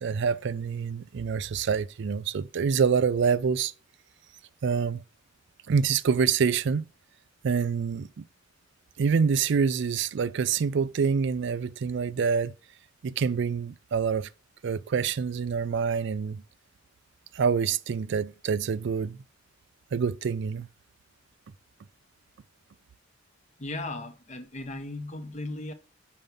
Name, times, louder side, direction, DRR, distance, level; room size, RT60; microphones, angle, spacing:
voice 1, 0.0-3.7 4.6-5.0 5.7-6.9 7.4-8.2 9.0-12.5 13.0-14.3 14.6-16.4 17.3-19.2 19.9-20.7, right 6 dB, 65° right, 0.4 m, -26 dB
voice 2, 23.6-25.7, left 2 dB, 35° left, 0.9 m, -36 dB
5.4 x 4.6 x 5.2 m
head